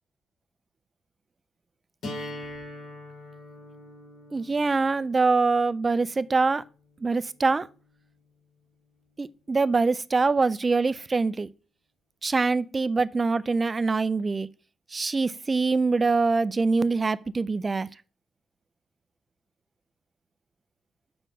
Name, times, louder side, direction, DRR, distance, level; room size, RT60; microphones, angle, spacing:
sound 1, 2.0-8.0, left 1 dB, 75° left, 4.1 m, -43 dB
voice 1, 4.3-6.6 7.0-7.7 9.2-11.5 12.2-14.5 14.9-17.9, right 4 dB, 30° right, 0.4 m, -24 dB
6.5 x 4.4 x 6.1 m
cardioid pair, 90°, 0 cm